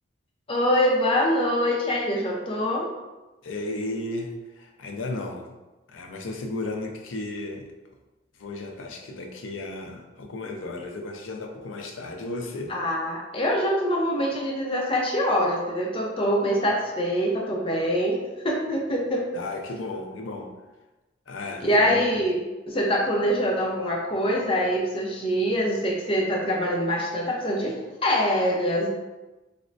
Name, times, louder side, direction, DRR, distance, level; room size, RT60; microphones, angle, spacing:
voice 1, 0.5-2.9 12.7-18.2 18.4-19.3 21.6-22.4 22.6-28.9, equal, 30° left, -2 dB, 0.6 m, -24 dB
voice 2, 3.4-5.6 5.9-7.7 8.4-12.7 19.3-20.5 21.3-22.1, left 2 dB, 90° left, 3 dB, 0.5 m, -34 dB
4.2 x 2.1 x 2.5 m, 1.1 s
head